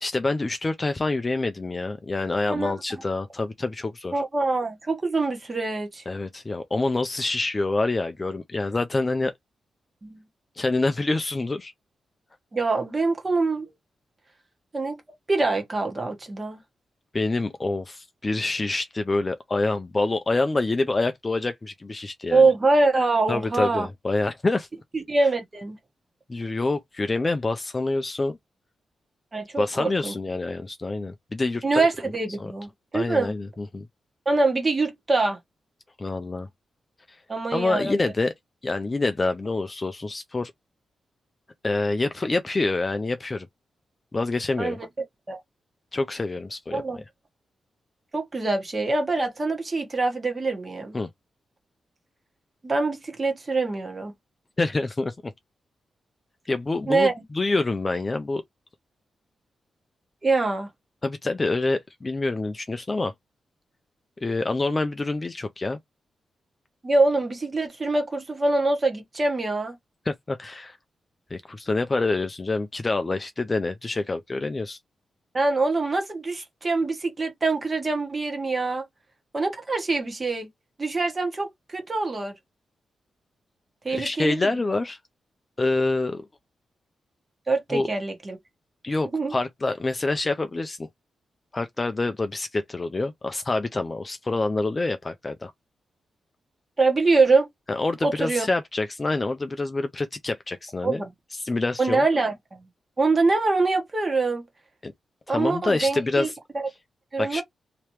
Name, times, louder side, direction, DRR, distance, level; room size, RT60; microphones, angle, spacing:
voice 1, 0.0-4.2 6.1-9.3 10.6-11.7 17.1-22.5 23.3-24.7 26.3-28.4 29.6-31.9 32.4-32.5 32.9-33.8 36.0-36.5 37.1-37.2 37.5-38.3 38.6-40.5 41.6-43.5 44.1-44.8 45.9-46.8 50.9-51.1 54.6-55.1 56.5-58.4 61.0-63.1 64.2-65.8 70.1-70.8 71.3-74.8 83.9-85.0 85.6-86.3 87.7-87.9 88.8-90.9 91.5-95.5 97.7-101.0 101.3-102.0 104.8-104.9 105.3-106.3 107.2-107.4, left 2 dB, 20° left, 0.4 m, -26 dB
voice 2, 4.1-6.0 10.0-10.2 12.5-13.7 14.7-15.0 15.3-16.6 22.3-23.9 24.9-25.8 29.3-30.1 31.6-33.3 34.2-35.4 37.3-37.9 44.6-44.8 45.3-45.4 46.7-47.0 48.1-51.0 52.6-54.1 56.9-57.2 60.2-60.7 66.8-69.8 75.3-78.9 79.3-80.5 80.8-82.3 83.8-84.5 87.5-88.4 89.1-89.3 96.8-97.5 98.0-98.4 100.8-101.1 101.8-102.3 103.0-104.4 105.3-106.7 107.1-107.4, right 3 dB, 20° right, 1.1 m, -24 dB
3.3 x 2.8 x 3.0 m
wide cardioid pair, 170°, 0 cm